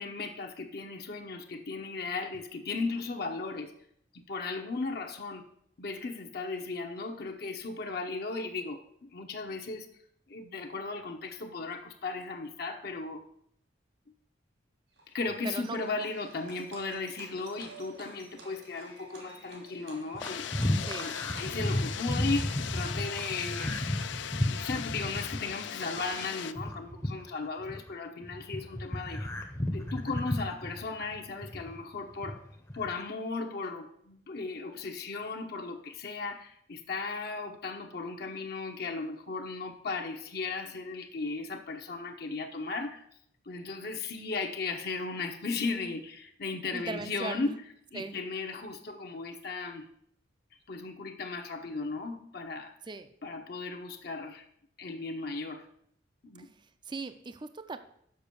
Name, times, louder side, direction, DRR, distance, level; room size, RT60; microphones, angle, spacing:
voice 1, 0.0-3.7 4.1-5.4 5.8-9.9 10.3-13.2 15.1-20.5 21.0-23.9 24.5-29.5 29.7-32.4 32.7-43.0 43.5-47.5 47.9-49.8 50.7-52.7 53.2-54.4 54.8-55.7 56.2-56.5, left 3 dB, 55° left, 4 dB, 0.8 m, -36 dB
Livestock farm animals working animals, 15.0-24.1, right 2 dB, 75° right, 1.9 m, -51 dB
voice 2, 15.4-15.8 20.9-21.1 46.7-47.6 47.9-48.2 52.8-53.1 56.4-57.8, right 3 dB, 25° right, 10 dB, 0.4 m, -39 dB
sound 1, 20.1-27.9 28.2-31.8 32.1-33.0, left 1 dB, 15° left, 0.7 m, -33 dB
sound 2, 20.2-26.5, left 9 dB, 75° left, 0.4 m, -39 dB
6.8 x 5.5 x 6.8 m, 0.68 s
head